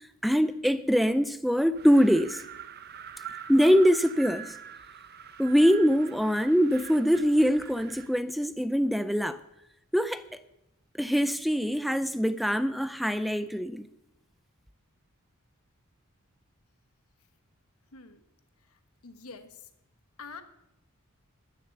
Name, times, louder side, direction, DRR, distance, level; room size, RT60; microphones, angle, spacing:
voice 1, 0.2-2.4 3.5-4.5 5.4-9.4 9.9-10.2 11.0-13.9, equal, ahead, 0.4 m, -23 dB
Wind, 1.7-8.2, right 7 dB, 45° right, 0.7 m, -44 dB
voice 2, 18.7-19.7 20.2-20.4, left 4 dB, 90° left, 1.2 m, -46 dB
13.5 x 6.8 x 7.8 m
head